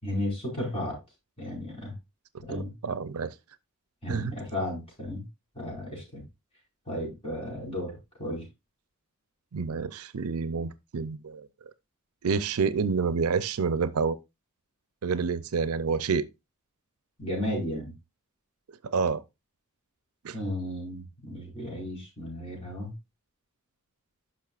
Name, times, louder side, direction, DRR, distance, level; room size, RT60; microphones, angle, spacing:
voice 1, 0.0-1.0 1.4-1.9 2.4-2.7 4.0-5.2 5.5-6.2 6.9-8.5 17.2-17.9 20.3-22.9, left 1 dB, 25° left, 5.0 m, -34 dB
voice 2, 2.5-3.3 4.1-4.3 9.5-11.5 12.2-14.2 15.0-16.3 18.8-19.2 20.2-20.4, right 5 dB, 75° right, 0.5 m, -28 dB
10.5 x 6.1 x 2.4 m
head